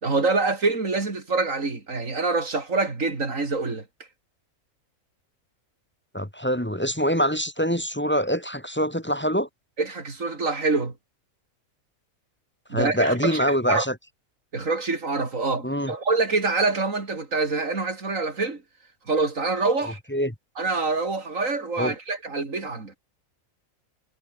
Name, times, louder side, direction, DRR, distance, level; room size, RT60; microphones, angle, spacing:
voice 1, 0.0-3.8 9.8-10.9 12.7-13.9 14.5-18.6 19.1-20.0 20.6-22.9, right 3 dB, 65° right, 3.6 m, -25 dB
voice 2, 6.1-9.5 12.7-13.9 15.6-15.9 20.1-20.3 21.8-21.9, equal, 10° left, 2.0 m, -24 dB
omnidirectional pair, 1.4 m